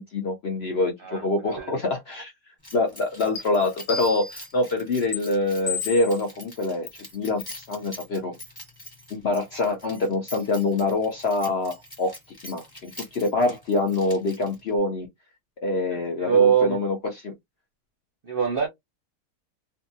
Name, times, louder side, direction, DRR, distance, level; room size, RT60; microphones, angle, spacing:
voice 1, 0.0-2.3 2.7-6.9 7.1-8.4 9.1-12.1 12.4-15.1 15.6-17.3, left 2 dB, 55° left, 0.7 m, -25 dB
voice 2, 1.0-1.7 15.9-16.8 18.2-18.7, right 8 dB, 50° right, 0.7 m, -23 dB
Keys jangling, 2.6-14.8, left 1 dB, 15° left, 1.1 m, -45 dB
sound 1, 3.4-3.5 3.9-4.5 5.1-5.2 5.7-6.2 6.9-7.0 7.4-7.6, left 6 dB, 90° left, 1.4 m, -32 dB
2.6 x 2.5 x 2.6 m
omnidirectional pair, 1.7 m